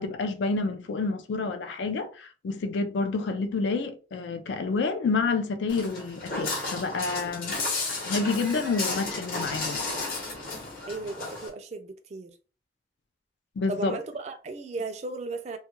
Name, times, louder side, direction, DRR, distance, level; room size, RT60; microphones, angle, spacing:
voice 1, 0.0-7.5 8.0-9.8 13.6-14.0, left 4 dB, 80° left, 0.4 m, -29 dB
Walk footsteps, 5.7-11.5, left 3 dB, 50° left, 0.8 m, -33 dB
voice 2, 10.8-12.3 13.7-15.6, right 3 dB, 40° right, 0.3 m, -35 dB
2.3 x 2.1 x 3.0 m
head